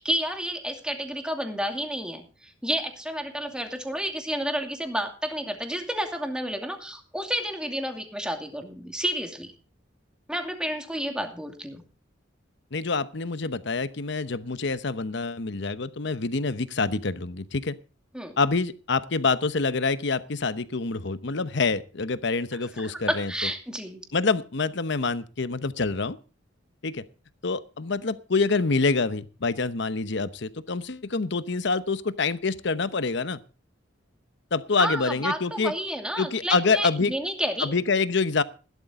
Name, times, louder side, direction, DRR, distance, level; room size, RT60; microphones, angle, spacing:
voice 1, 0.0-9.5 10.3-11.8 18.1-18.4 22.8-24.0 34.8-37.7, right 1 dB, 5° right, 2.4 m, -30 dB
voice 2, 12.7-17.7 18.4-23.3 24.1-26.2 26.8-27.0 27.4-33.4 34.5-35.7 36.2-37.1 37.6-38.4, left 4 dB, 65° left, 0.9 m, -26 dB
16.0 x 12.0 x 3.7 m
head